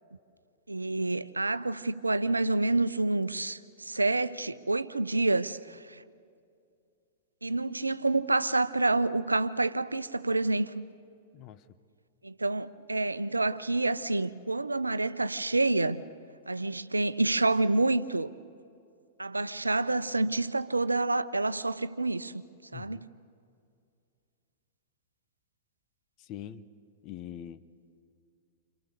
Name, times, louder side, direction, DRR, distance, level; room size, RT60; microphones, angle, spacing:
voice 1, 0.7-6.0 7.4-10.8 12.2-16.0 16.5-18.3 19.2-22.4 22.7-23.0, right 2 dB, 85° right, 0.7 m, -28 dB
voice 2, 11.3-11.8 22.7-23.1 26.2-26.7 27.0-27.6, left 10 dB, 35° left, 1.1 m, -43 dB
29.0 x 27.5 x 6.8 m
figure-of-eight pair, 100°, 0 cm